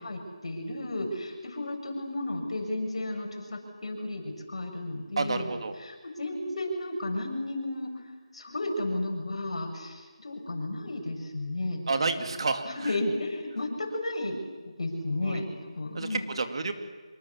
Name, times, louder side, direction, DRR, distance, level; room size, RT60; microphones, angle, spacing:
voice 1, 0.0-5.5 5.8-7.9 8.3-11.8 12.1-12.3 12.6-14.4 14.7-16.2, left 1 dB, 60° left, 2 dB, 7.1 m, -33 dB
voice 2, 5.2-5.7 11.9-13.0 15.2-15.4 15.9-16.7, right 3 dB, 50° right, 7 dB, 2.4 m, -30 dB
26.0 x 23.5 x 7.4 m, 1.4 s
figure-of-eight pair, 170°, 3 cm